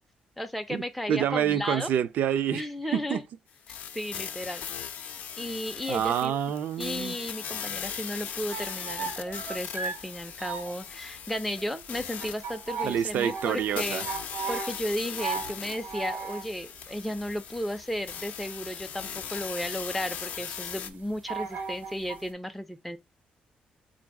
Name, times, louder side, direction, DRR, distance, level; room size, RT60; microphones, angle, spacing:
voice 1, 0.4-1.9 2.5-3.2 3.7-4.6 5.4-6.4 6.8-14.1 14.5-23.0, left 1 dB, ahead, 0.4 m, -34 dB
voice 2, 1.1-2.6 2.9-3.2 5.9-7.2 12.8-14.0, right 9 dB, 70° right, 0.4 m, -27 dB
sound 1, 3.7-20.9, left 8 dB, 65° left, 0.5 m, -39 dB
sound 2, 8.5-22.3, right 5 dB, 90° right, 1.3 m, -38 dB
3.8 x 2.6 x 4.5 m
cardioid pair, 145°, 3 cm